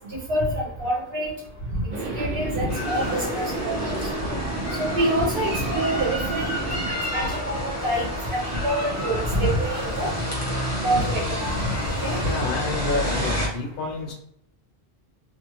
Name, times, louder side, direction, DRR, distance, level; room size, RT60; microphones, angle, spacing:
voice 1, 0.3-1.3 1.7-4.0 4.8-6.6 7.1-10.1 10.8-11.7 12.0-12.2, right 1 dB, 75° right, -5 dB, 1.1 m, -26 dB
sound 1, 1.9-6.9, right 3 dB, 55° right, 0.8 m, -32 dB
sound 2, 2.7-13.5, left 1 dB, 20° left, 0.7 m, -29 dB
voice 2, 12.2-14.1, left 3 dB, 60° left, 0 dB, 0.8 m, -29 dB
2.5 x 2.4 x 3.0 m, 0.70 s
omnidirectional pair, 1.1 m